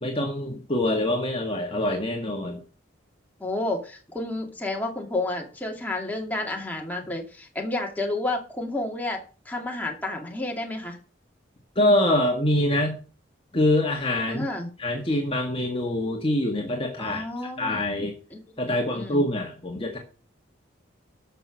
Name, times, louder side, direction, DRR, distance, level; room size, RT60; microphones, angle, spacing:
voice 1, 0.0-2.6 11.8-13.0 13.5-14.5 14.8-17.2 17.6-18.1 18.6-20.0, left 1 dB, 30° left, 1 dB, 1.8 m, -25 dB
voice 2, 3.4-9.2 9.5-11.0 14.3-14.7 17.0-17.8 18.3-18.4 18.7-19.2, left 2 dB, 10° left, 0 dB, 2.4 m, -30 dB
13.0 x 6.0 x 6.3 m, 0.38 s
head